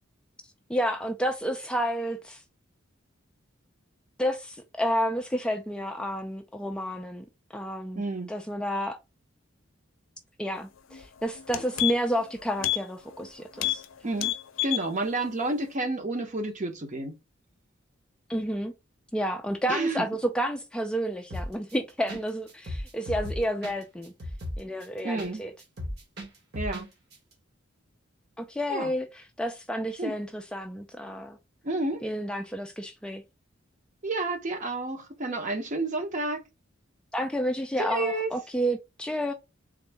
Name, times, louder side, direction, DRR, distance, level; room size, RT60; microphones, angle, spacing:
voice 1, 0.7-2.4 4.2-7.2 7.5-8.0 8.3-9.0 10.4-13.8 18.3-18.7 19.1-24.1 24.6-25.5 28.4-31.4 32.0-33.2 37.1-39.3, equal, 5° left, 0.3 m, -30 dB
voice 2, 7.9-8.3 14.0-14.3 14.6-17.2 19.7-20.0 25.0-25.4 26.5-26.9 28.7-28.9 30.0-30.2 31.6-32.0 34.0-36.5 37.8-38.3, right 2 dB, 40° right, 0.8 m, -30 dB
sound 1, 10.9-11.0 11.4-12.2 12.6-12.8 13.1-13.3 13.6-13.9 14.1-14.9 15.3-15.4, left 14 dB, 80° left, 0.5 m, -29 dB
sound 2, 21.3-21.7 22.1-22.2 22.5-25.3 25.6-26.9 27.1-27.2, left 1 dB, 55° right, 1.3 m, -35 dB
3.7 x 2.6 x 3.3 m
head